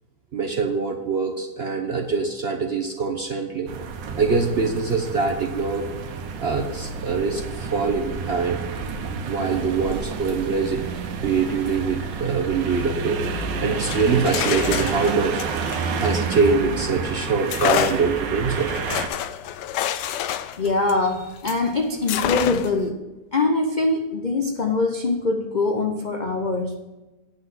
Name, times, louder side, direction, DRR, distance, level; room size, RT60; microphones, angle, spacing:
voice 1, 0.3-3.7 4.2-5.9 6.4-8.6 9.3-10.8 11.2-15.5 16.0-18.7, right 4 dB, 50° right, 2 dB, 0.8 m, -24 dB
sound 1, 3.7-19.1, right 5 dB, 85° right, 1.6 m, -29 dB
sound 2, 13.8-16.8 17.5-21.7 22.1-22.9, left 10 dB, 75° left, 1.2 m, -28 dB
voice 2, 20.6-23.1 23.3-26.8, left 3 dB, 55° left, 3 dB, 0.5 m, -23 dB
9.6 x 5.8 x 6.0 m, 1.1 s
omnidirectional pair, 1.9 m